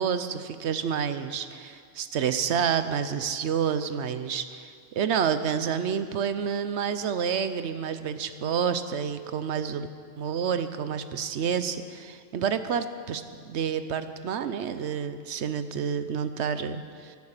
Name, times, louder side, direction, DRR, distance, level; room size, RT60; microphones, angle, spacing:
voice 1, 0.0-9.9 10.2-17.2, right 7 dB, 60° right, 11 dB, 0.9 m, -29 dB
14.0 x 11.5 x 6.7 m, 2.2 s
omnidirectional pair, 1.5 m